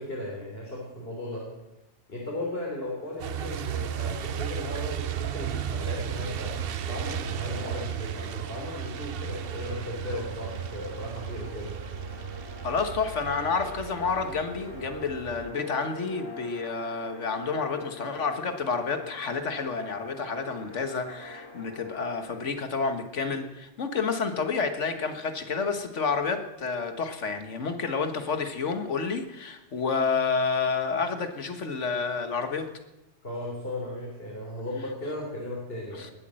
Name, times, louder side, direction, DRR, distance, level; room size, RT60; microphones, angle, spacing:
voice 1, 0.0-1.5 2.1-11.7 33.2-36.1, left 1 dB, 50° left, -3 dB, 3.6 m, -36 dB
sound 1, 2.5-22.4, left 2 dB, 20° left, 1.5 m, -46 dB
Truck, 3.2-15.5, right 9 dB, 60° right, 0.8 m, -35 dB
voice 2, 12.6-32.7 36.0-36.1, left 5 dB, 75° left, 7 dB, 1.7 m, -29 dB
20.0 x 8.4 x 7.6 m, 1.0 s
omnidirectional pair, 1.2 m